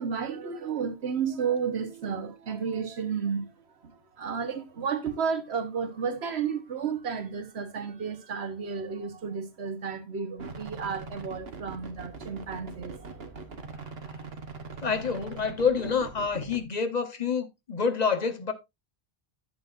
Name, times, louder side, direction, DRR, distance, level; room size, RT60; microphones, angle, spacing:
voice 1, 0.0-13.9, right 6 dB, 90° right, 1.3 m, -32 dB
sound 1, 10.4-16.6, right 4 dB, 70° right, 1.5 m, -42 dB
voice 2, 14.8-18.5, left 5 dB, 40° left, 1.1 m, -27 dB
11.0 x 7.6 x 2.5 m
omnidirectional pair, 1.1 m